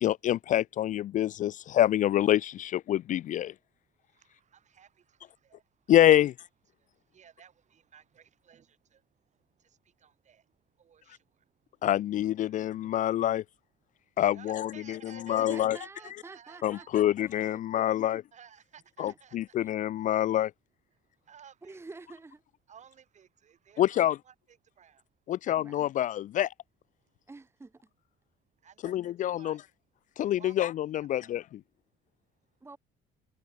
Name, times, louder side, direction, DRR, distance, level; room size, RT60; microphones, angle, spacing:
voice 1, 0.0-3.5 5.9-6.3 11.8-13.4 14.2-14.7 15.3-15.8 16.6-18.2 19.0-20.5 23.8-24.2 25.3-26.5 28.8-29.6 30.2-31.4, left 12 dB, 50° left, 0.4 m, -26 dB
voice 2, 4.2-5.2 5.4-5.6 5.9-6.3 7.1-9.0 10.0-10.4 10.8-11.2 14.3-15.7 16.0-17.2 18.3-19.4 21.3-22.0 22.7-25.0 28.6-29.6 30.4-30.5 31.0-31.3, right 8 dB, 45° right, 4.2 m, -55 dB
voice 3, 15.5-18.1 19.1-19.2 19.6-19.7 21.6-22.4 25.6-25.8 27.3-27.8 32.6-32.8, right 3 dB, 15° right, 1.3 m, -48 dB
cardioid pair, 110°, 17 cm